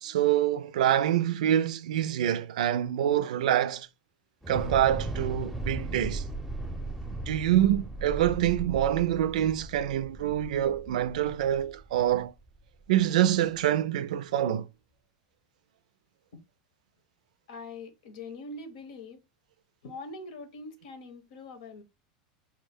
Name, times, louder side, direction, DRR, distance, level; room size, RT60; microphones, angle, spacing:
voice 1, 0.0-3.9 4.5-6.2 7.3-12.3 12.9-14.7, right 11 dB, 80° right, 0.4 m, -26 dB
Thunder / Explosion, 4.4-12.6, right 2 dB, 5° right, 0.6 m, -37 dB
voice 2, 17.5-19.2 19.8-21.8, left 3 dB, 80° left, 1.0 m, -43 dB
4.5 x 2.1 x 3.5 m
supercardioid pair, 110°, 4 cm